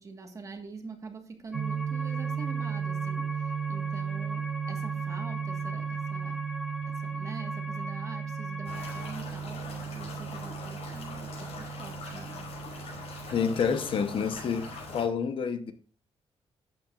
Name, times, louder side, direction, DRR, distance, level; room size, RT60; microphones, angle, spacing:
voice 1, 0.0-6.4 6.9-12.6, right 4 dB, 30° right, 1.6 m, -44 dB
sound 1, 1.5-9.1, left 1 dB, ahead, 0.8 m, -40 dB
sound 2, 1.5-15.0, right 8 dB, 65° right, 0.7 m, -36 dB
sound 3, 8.6-15.0, left 3 dB, 85° left, 5.7 m, -42 dB
voice 2, 13.3-14.7 14.9-15.7, left 6 dB, 60° left, 0.9 m, -28 dB
12.5 x 8.9 x 2.5 m
wide cardioid pair, 170°, 10 cm